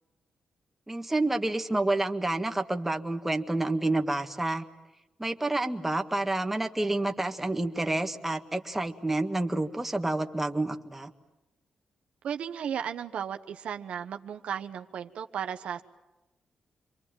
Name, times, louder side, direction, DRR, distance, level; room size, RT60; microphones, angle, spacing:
voice 1, 0.9-4.6 5.2-11.1, right 2 dB, 10° right, 5 dB, 1.6 m, -29 dB
voice 2, 12.2-15.8, right 8 dB, 75° right, 7 dB, 1.1 m, -35 dB
28.0 x 23.5 x 9.0 m, 1.0 s
cardioid pair, 90°, 2 cm